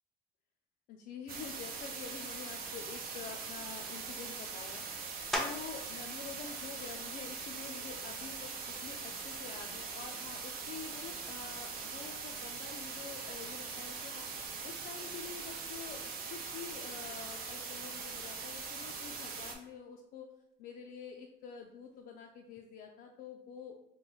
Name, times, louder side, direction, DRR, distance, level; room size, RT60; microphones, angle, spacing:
voice 1, 0.9-4.8 5.3-14.3 14.6-20.3 20.6-23.8, left 6 dB, 60° left, 2 dB, 0.4 m, -47 dB
sound 1, 1.3-19.5, right 5 dB, 60° right, 0.6 m, -42 dB
sound 2, 5.3-5.9 6.5-10.9 11.4-16.6 16.9-22.5, equal, ahead, 0.5 m, -47 dB
3.1 x 2.1 x 3.7 m, 0.83 s
cardioid pair, 110°, 17 cm